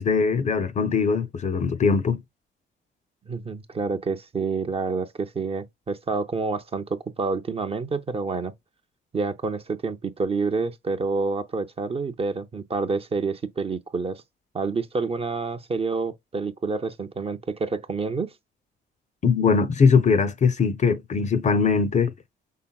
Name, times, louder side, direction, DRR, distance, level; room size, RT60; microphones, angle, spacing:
voice 1, 0.0-2.2 19.2-22.1, left 5 dB, 35° left, 0.5 m, -21 dB
voice 2, 3.3-8.5 9.1-14.2 14.5-18.3, right 4 dB, 30° right, 0.5 m, -28 dB
5.7 x 3.4 x 2.3 m
cardioid pair, 90°, 20 cm